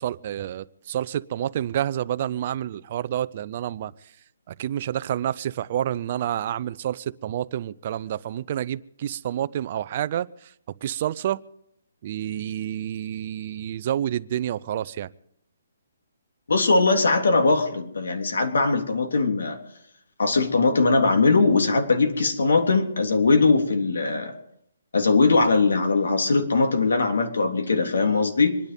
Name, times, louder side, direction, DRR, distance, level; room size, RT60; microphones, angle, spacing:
voice 1, 0.0-3.9 4.5-10.5 10.8-11.4 12.0-15.1, right 11 dB, 35° right, 0.5 m, -29 dB
voice 2, 16.5-19.6 20.2-24.3 24.9-28.6, left 3 dB, 85° left, 3.4 m, -20 dB
26.0 x 10.5 x 5.3 m
hypercardioid pair, 165°, 0 cm